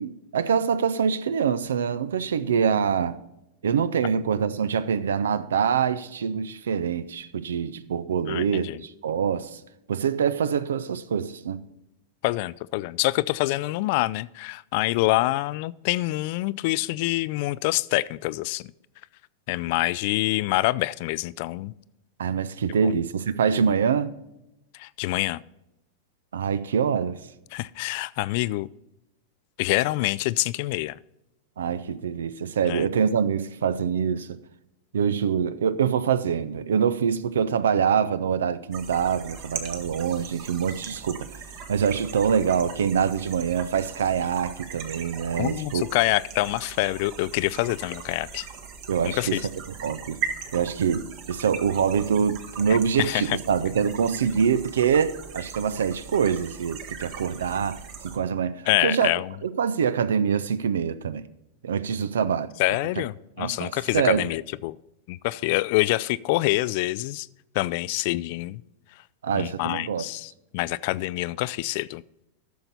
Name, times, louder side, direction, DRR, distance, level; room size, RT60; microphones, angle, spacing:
voice 1, 0.0-3.2 3.6-9.6 9.9-11.6 22.2-24.1 26.3-27.2 31.6-34.4 34.9-41.3 41.7-45.8 48.9-49.4 49.8-50.2 50.5-59.1 59.4-61.2 61.6-62.5 63.4-64.3 69.2-70.0, right 7 dB, 65° right, 0.5 m, -25 dB
voice 2, 8.3-8.8 12.2-18.7 19.5-21.7 22.8-22.9 24.8-25.4 27.5-28.7 29.6-31.0 32.6-32.9 45.4-48.5 49.0-49.4 53.0-53.4 58.7-59.3 62.6-64.8 65.1-67.3 67.5-68.6 69.3-72.0, left 19 dB, 50° left, 0.3 m, -26 dB
sound 1, 38.7-58.2, right 6 dB, 45° right, 1.4 m, -39 dB
14.0 x 6.7 x 4.1 m
figure-of-eight pair, 90°, 0 cm